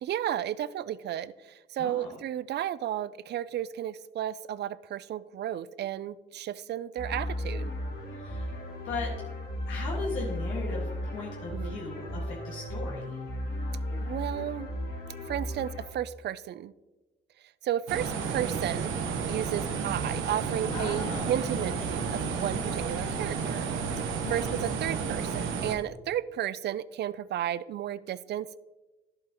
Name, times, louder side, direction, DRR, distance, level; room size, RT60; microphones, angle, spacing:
voice 1, 0.0-7.7 11.5-11.8 14.0-14.7 15.3-16.7 17.6-18.9 19.3-23.7 24.0-28.6, right 11 dB, 60° right, 18 dB, 0.4 m, -33 dB
voice 2, 1.8-2.1 8.2-8.6 8.8-9.1 9.7-13.2 20.6-21.3 24.2-24.5, left 3 dB, 80° left, -4 dB, 1.7 m, -37 dB
sound 1, 7.0-15.9, left 1 dB, 55° left, 2.7 m, -35 dB
sound 2, 17.9-25.8, right 5 dB, 85° right, 1.0 m, -31 dB
11.0 x 7.7 x 2.9 m, 1.1 s
cardioid pair, 90°, 20 cm